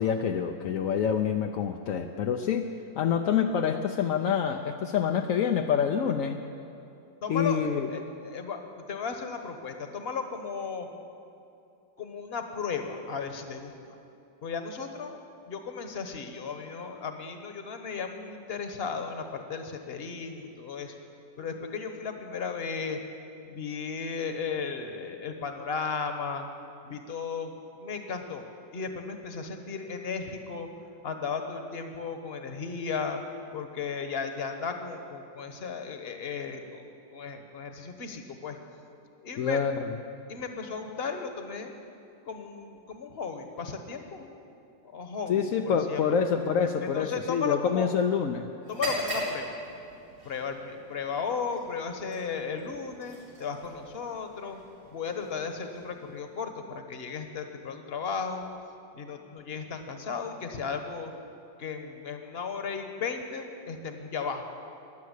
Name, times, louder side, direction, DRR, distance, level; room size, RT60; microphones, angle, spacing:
voice 1, 0.0-6.4 7.3-7.9 39.4-39.9 45.3-48.5, left 7 dB, 70° left, 4 dB, 0.8 m, -27 dB
voice 2, 7.2-10.9 12.0-14.0 14.4-15.2 15.5-20.9 21.4-23.0 23.5-26.4 26.8-27.5 27.8-28.5 28.7-30.7 31.0-33.2 33.5-36.8 37.1-38.6 39.2-39.6 40.3-41.7 42.3-44.3 44.8-46.2 46.8-47.9 48.7-49.6 50.2-54.6 54.9-58.4 58.9-61.1 61.6-64.4, left 5 dB, 40° left, 6 dB, 1.2 m, -35 dB
sound 1, 48.6-56.5, right 1 dB, 85° right, 5.1 m, -40 dB
16.0 x 10.5 x 8.2 m, 2.6 s
omnidirectional pair, 2.0 m